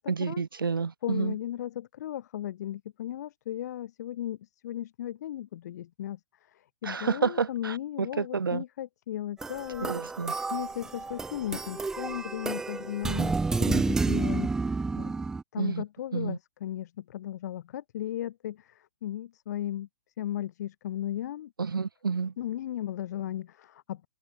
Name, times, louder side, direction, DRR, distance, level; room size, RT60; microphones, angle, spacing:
voice 1, 0.1-1.4 6.8-8.6 9.8-10.4 15.6-15.8 16.1-16.4 21.6-22.3, right 5 dB, 70° right, 1.1 m, -30 dB
voice 2, 1.0-9.9 10.5-13.3 13.6-15.1 15.5-19.9 20.2-21.5 22.4-24.1, left 12 dB, 50° left, 2.8 m, -36 dB
sound 1, 9.4-15.4, right 3 dB, 5° right, 0.3 m, -30 dB
figure-of-eight pair, 115°, 12 cm